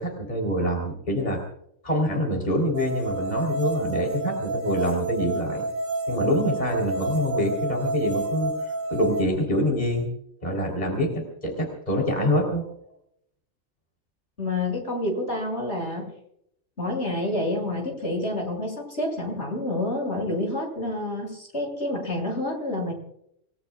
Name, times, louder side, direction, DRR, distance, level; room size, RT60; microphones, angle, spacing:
voice 1, 0.0-1.4 1.8-5.6 6.1-10.1 10.4-12.7, equal, 30° left, 1 dB, 3.7 m, -25 dB
sound 1, 2.7-9.2, right 2 dB, 80° right, 1.8 m, -29 dB
voice 2, 14.4-16.1 16.8-22.9, left 1 dB, 60° left, 1 dB, 6.6 m, -28 dB
27.5 x 19.5 x 2.3 m, 0.73 s
omnidirectional pair, 1.3 m